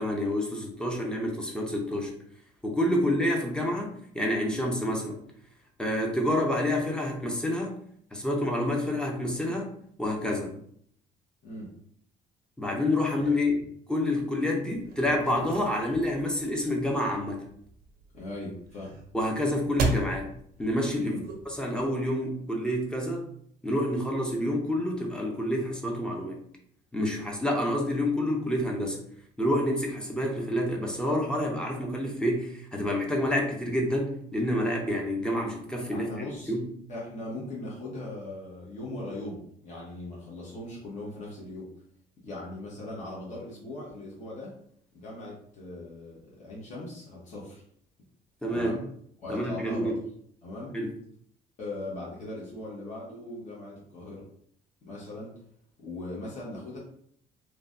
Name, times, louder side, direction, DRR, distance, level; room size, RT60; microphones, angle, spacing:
voice 1, 0.0-2.1 2.6-3.9 4.1-5.2 5.8-7.8 8.1-10.5 12.6-13.6 13.9-17.5 19.1-20.3 20.6-21.2 21.5-23.3 23.6-26.4 26.9-29.0 29.4-36.6 48.4-48.7 49.3-50.0 50.7-50.9, left 1 dB, 5° left, 0 dB, 0.6 m, -28 dB
voice 2, 13.2-13.5 18.1-18.9 21.0-21.2 35.9-36.5 36.9-41.7 42.2-44.5 44.9-47.6 48.5-48.8 49.2-50.0 50.4-50.7 51.6-54.2 54.8-55.3 55.8-56.8, left 1 dB, 45° left, -6 dB, 1.0 m, -39 dB
sound 1, 14.7-21.8, right 2 dB, 65° right, 0.6 m, -36 dB
3.1 x 2.2 x 2.6 m, 0.65 s
cardioid pair, 110°, 17 cm